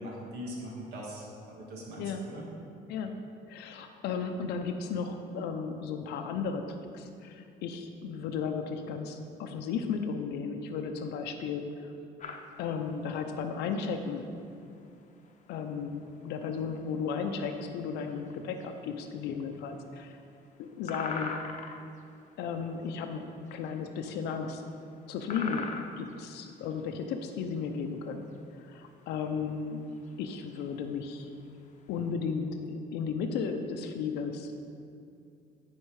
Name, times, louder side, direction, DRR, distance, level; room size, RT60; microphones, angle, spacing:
voice 1, 0.0-2.4, equal, 85° right, -3 dB, 1.9 m, -41 dB
voice 2, 2.9-11.9 12.6-14.3 15.5-20.2 20.6-21.4 22.4-24.6 25.1-29.9 30.2-31.3 31.9-34.6, left 5 dB, 85° left, 5 dB, 0.6 m, -35 dB
sound 1, 12.2-32.1, left 4 dB, 45° left, 0.7 m, -44 dB
9.6 x 4.5 x 4.7 m, 2.5 s
cardioid pair, 110°, 17 cm